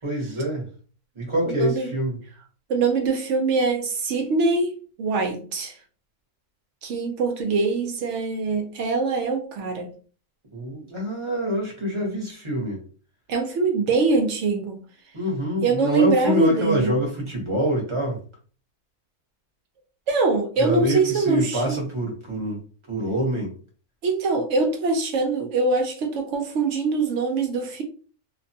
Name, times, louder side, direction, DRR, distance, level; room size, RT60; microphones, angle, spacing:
voice 1, 0.0-0.7 1.2-2.2 10.5-12.8 15.1-18.2 20.6-22.6 22.9-23.5, right 1 dB, 25° right, 0.8 m, -25 dB
voice 2, 1.5-1.9 2.7-4.7 5.0-5.8 6.8-9.9 13.3-14.8 15.6-17.0 20.1-21.6 24.0-27.8, right 3 dB, 65° right, 0.7 m, -23 dB
2.5 x 2.2 x 2.7 m
omnidirectional pair, 1.6 m